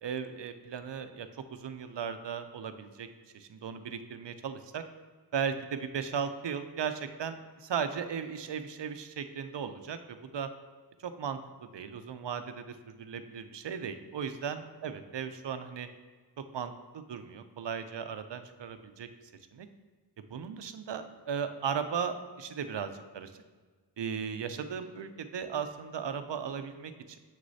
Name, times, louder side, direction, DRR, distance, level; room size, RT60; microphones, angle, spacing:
voice 1, 0.0-3.1 3.3-4.8 5.3-10.5 11.0-15.9 16.5-19.1 19.5-19.7 20.2-23.3 24.0-27.2, right 7 dB, 90° right, 9 dB, 0.5 m, -37 dB
6.8 x 6.3 x 2.7 m, 1.5 s
wide cardioid pair, 55°, 41 cm